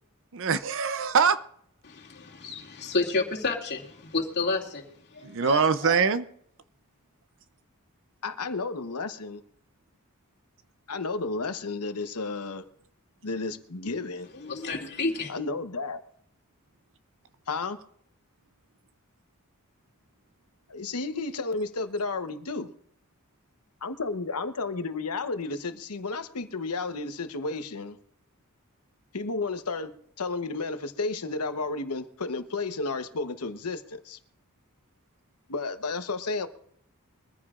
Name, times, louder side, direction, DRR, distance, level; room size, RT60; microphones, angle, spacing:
voice 1, 0.3-1.4 5.2-6.2, right 5 dB, 60° right, 0.6 m, -23 dB
voice 2, 1.8-4.8 5.1-6.0 14.3-15.3, left 3 dB, 50° left, 2.6 m, -30 dB
voice 3, 8.2-9.4 10.9-12.6 13.2-14.3 15.3-16.0 17.5-17.8 20.7-22.7 23.8-28.0 29.1-29.9 30.2-34.2 35.5-36.5, left 3 dB, 85° left, 1.0 m, -32 dB
23.0 x 14.5 x 2.5 m
head